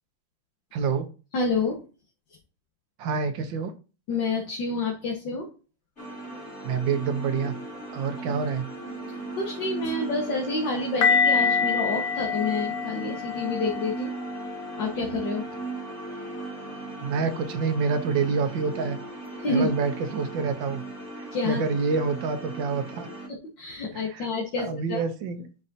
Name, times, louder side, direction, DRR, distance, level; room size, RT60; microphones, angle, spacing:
voice 1, 0.7-1.1 3.0-3.7 6.6-7.5 7.9-8.7 17.0-19.0 19.5-20.8 21.2-23.1 23.9-24.3 24.6-25.5, right 5 dB, 65° right, 9 dB, 1.6 m, -27 dB
voice 2, 1.3-1.8 4.1-5.5 8.2-8.3 9.4-14.1 14.8-15.4 19.4-19.8 21.3-21.6 23.6-25.0, left 3 dB, 60° left, -1 dB, 2.1 m, -28 dB
sound 1, 6.0-23.3, right 2 dB, 30° left, 3.8 m, -37 dB
sound 2, 11.0-15.9 16.6-16.8, left 6 dB, 85° left, 1.9 m, -27 dB
10.5 x 4.9 x 2.8 m, 0.34 s
omnidirectional pair, 2.3 m